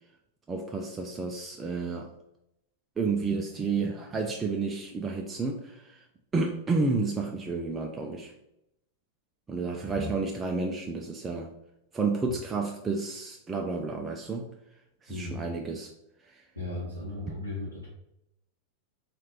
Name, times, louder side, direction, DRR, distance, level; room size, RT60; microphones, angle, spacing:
voice 1, 0.5-2.1 3.0-6.0 6.3-8.3 9.5-11.5 11.9-14.5 15.0-15.9 16.3-16.4, right 4 dB, 15° right, 1 dB, 0.4 m, -31 dB
voice 2, 15.1-15.4 16.5-17.9, left 2 dB, 85° left, -6 dB, 0.8 m, -36 dB
4.2 x 2.4 x 3.1 m, 0.83 s
figure-of-eight pair, 90°, 0 cm